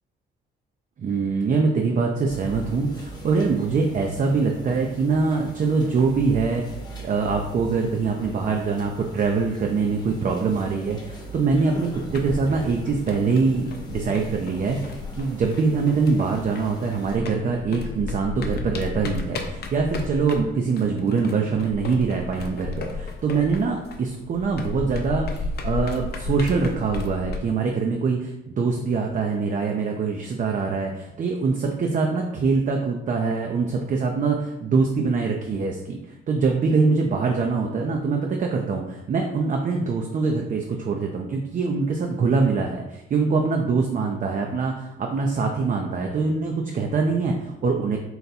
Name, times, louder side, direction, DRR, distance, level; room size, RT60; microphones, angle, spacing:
voice 1, 1.0-6.6 7.0-36.0 36.3-48.0, right 4 dB, 40° right, 2 dB, 0.5 m, -24 dB
sound 1, 2.3-17.2, right 1 dB, 20° left, 0.9 m, -40 dB
sound 2, 11.9-16.8 17.1-27.4, left 4 dB, 55° left, 0.6 m, -34 dB
3.9 x 2.2 x 4.0 m, 0.89 s
cardioid pair, 90°, 20 cm